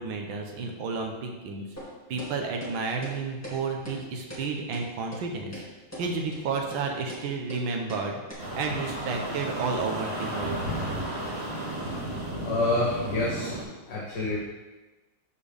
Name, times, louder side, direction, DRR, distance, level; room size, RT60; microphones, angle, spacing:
voice 1, 0.0-1.6 2.1-5.6 6.0-8.2 8.5-10.6, right 4 dB, 85° right, 2 dB, 1.7 m, -31 dB
sound 1, 1.8-1.9 2.2-2.3 2.6-2.7 3.0-3.2 3.4-3.6 3.9-4.0 4.3-4.4 4.7-4.8 5.1-5.2 5.5-5.7 5.9-6.1 6.3-6.4 6.7-6.8 7.1-7.2 7.5-7.6 7.9-8.0 8.3-8.4, equal, 10° left, 1.8 m, -40 dB
sound 2, 8.4-13.6, right 1 dB, 30° right, 2.4 m, -33 dB
voice 2, 12.4-13.5 13.9-14.4, left 2 dB, 60° left, -5 dB, 1.7 m, -27 dB
12.5 x 4.4 x 3.5 m, 1.2 s
omnidirectional pair, 2.1 m